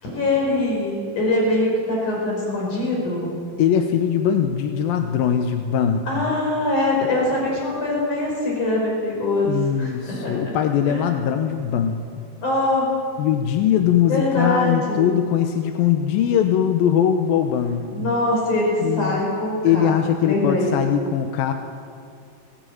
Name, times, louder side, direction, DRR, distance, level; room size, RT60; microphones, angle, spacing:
voice 1, 0.0-3.3 6.1-10.5 10.8-11.0 12.4-12.9 14.1-15.1 17.9-20.7, left 2 dB, 50° left, -2 dB, 6.6 m, -23 dB
voice 2, 3.6-6.2 9.4-12.3 13.2-18.1 18.8-19.3 19.6-21.5, left 9 dB, 75° left, 5 dB, 2.6 m, -21 dB
20.0 x 18.5 x 9.3 m, 2.3 s
omnidirectional pair, 4.5 m